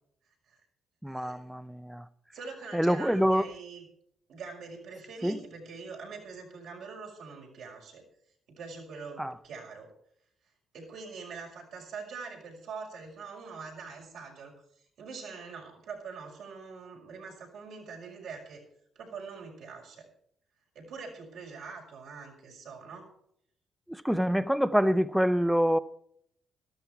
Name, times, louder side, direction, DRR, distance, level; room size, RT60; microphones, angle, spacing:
voice 1, 1.0-2.0 2.7-3.4 5.2-5.4 9.2-9.3 23.9-25.8, equal, 5° right, 0.6 m, -26 dB
voice 2, 2.3-3.9 4.3-8.0 8.5-9.9 10.7-14.5 15.0-18.6 19.0-20.1 20.7-23.1, right 5 dB, 80° right, 5.8 m, -44 dB
13.0 x 13.0 x 4.6 m
cardioid pair, 90°, 0 cm